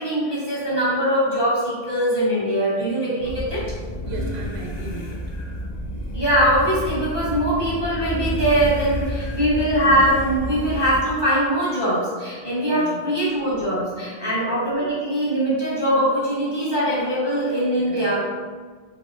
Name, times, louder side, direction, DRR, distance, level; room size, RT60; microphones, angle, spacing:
voice 1, 0.0-3.6 6.1-18.3, equal, 25° left, -10 dB, 1.2 m, -22 dB
sound 1, 3.2-11.0, equal, 55° left, 0.5 m, -30 dB
voice 2, 4.0-5.2 12.7-13.0 14.1-14.3 17.9-18.1, right 3 dB, 75° right, 1 dB, 0.8 m, -36 dB
4.2 x 2.6 x 2.5 m, 1.6 s
omnidirectional pair, 1.1 m